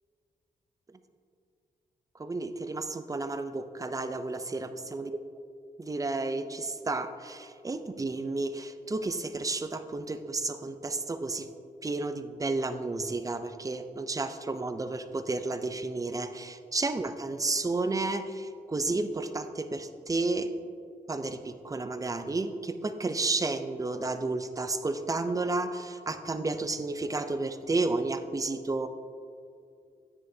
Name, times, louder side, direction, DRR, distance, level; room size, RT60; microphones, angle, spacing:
voice 1, 2.2-5.2 5.8-11.5 11.8-20.5 21.1-28.9, right 3 dB, 20° right, 9 dB, 0.5 m, -32 dB
10.0 x 9.7 x 2.8 m, 2.4 s
cardioid pair, 100°, 15 cm